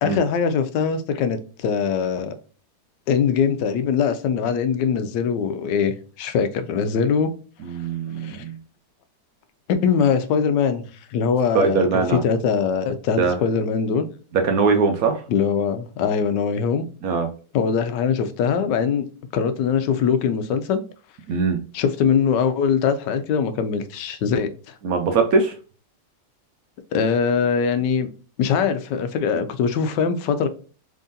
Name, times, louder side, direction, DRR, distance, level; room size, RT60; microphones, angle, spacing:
voice 1, 0.0-2.3 3.1-7.3 8.2-8.4 9.7-10.8 11.1-14.1 15.3-16.9 17.5-19.1 19.3-20.8 21.7-24.7 26.9-28.1 28.4-30.5, left 6 dB, 85° left, 1.2 m, -22 dB
voice 2, 7.6-8.6 11.5-12.2 13.2-13.4 14.3-15.2 17.0-17.3 21.3-21.6 24.8-25.5, right 4 dB, 65° right, 0.9 m, -21 dB
3.7 x 3.4 x 2.6 m
omnidirectional pair, 1.9 m